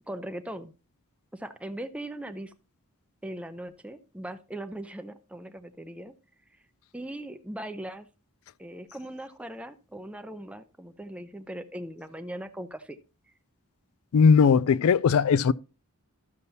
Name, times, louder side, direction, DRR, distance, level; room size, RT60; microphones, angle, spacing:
voice 1, 0.1-0.7 1.3-2.5 3.2-6.1 6.9-8.1 8.6-13.0, right 1 dB, 5° right, 0.5 m, -39 dB
voice 2, 14.1-15.5, left 6 dB, 70° left, 0.3 m, -19 dB
12.5 x 6.7 x 2.7 m
head